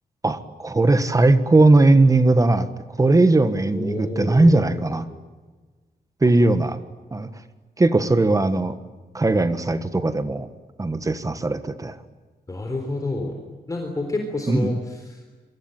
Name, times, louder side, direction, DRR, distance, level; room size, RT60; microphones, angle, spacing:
voice 1, 0.2-2.7 3.0-5.1 6.2-6.8 7.1-7.3 7.8-8.8 9.1-10.5 10.8-12.0 14.5-14.8, right 2 dB, 20° right, 11 dB, 1.5 m, -18 dB
voice 2, 3.7-4.8 5.1-5.2 12.5-13.3 13.7-15.4, left 2 dB, 20° left, 3 dB, 3.9 m, -29 dB
27.5 x 23.5 x 9.1 m, 1.3 s
wide cardioid pair, 170°, 16 cm